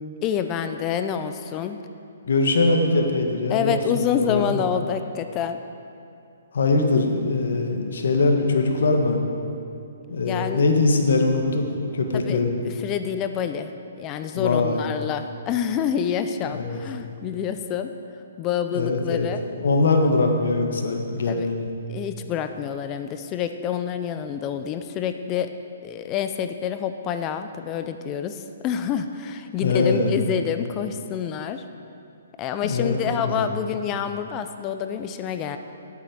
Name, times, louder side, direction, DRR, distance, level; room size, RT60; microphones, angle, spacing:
voice 1, 0.2-1.8 3.5-5.6 10.2-10.6 12.1-12.4 12.8-17.9 18.4-19.4 21.3-21.5 21.9-25.5 25.8-31.6 32.4-35.6, left 8 dB, 25° left, 8 dB, 0.5 m, -27 dB
voice 2, 2.3-4.6 6.5-9.2 10.1-12.6 14.3-14.8 16.5-16.8 18.7-19.3 19.6-21.7 29.6-30.1 32.6-33.5, left 3 dB, 70° left, 3 dB, 1.6 m, -22 dB
8.6 x 7.5 x 8.4 m, 2.6 s
hypercardioid pair, 145°, 0 cm